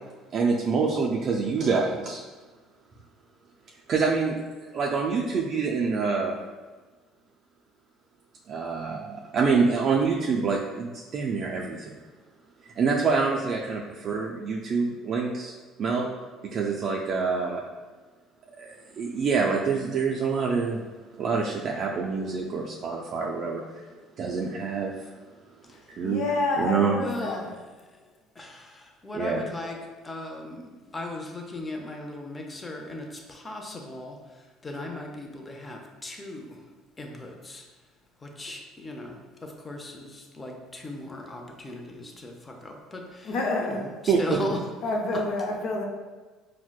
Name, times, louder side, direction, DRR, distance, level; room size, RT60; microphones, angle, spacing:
voice 1, 0.3-2.2 3.9-6.4 8.5-12.0 12.6-16.1 16.4-17.6 18.6-20.8 21.2-23.9 24.2-25.1 26.0-26.2 26.6-26.9 29.1-29.4 44.1-44.4, right 5 dB, 50° right, -2 dB, 0.3 m, -26 dB
voice 2, 25.7-27.5 43.2-43.8 44.8-45.8, left 2 dB, 65° left, 0 dB, 0.6 m, -28 dB
voice 3, 27.0-27.4 28.4-29.8 30.0-34.2 34.6-36.6 37.0-37.6 38.2-43.3 43.6-44.6, left 1 dB, 25° left, 2 dB, 0.6 m, -37 dB
4.3 x 2.1 x 2.3 m, 1.3 s
supercardioid pair, 75°, 0 cm